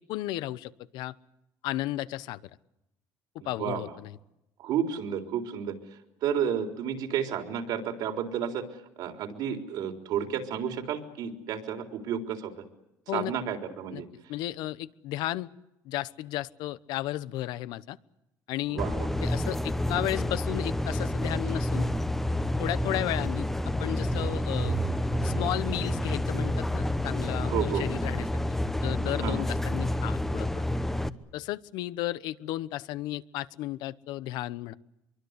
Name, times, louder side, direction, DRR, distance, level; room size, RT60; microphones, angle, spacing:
voice 1, 0.1-1.1 1.6-2.5 3.4-4.2 13.1-13.3 13.9-14.0 14.3-15.5 15.8-18.0 18.5-18.8 19.2-21.9 22.6-24.8 25.2-28.3 28.8-30.6 31.3-34.8, left 15 dB, 85° left, 17 dB, 0.9 m, -34 dB
voice 2, 3.4-3.9 4.6-12.5 13.1-14.3 18.7-19.1 27.4-27.8 29.2-29.5, right 8 dB, 70° right, 5 dB, 3.9 m, -32 dB
sound 1, 18.8-31.1, left 1 dB, 5° left, 1.0 m, -29 dB
sound 2, 23.9-27.3, right 7 dB, 25° right, 1.2 m, -37 dB
25.0 x 23.5 x 8.2 m, 0.88 s
cardioid pair, 150°, 7 cm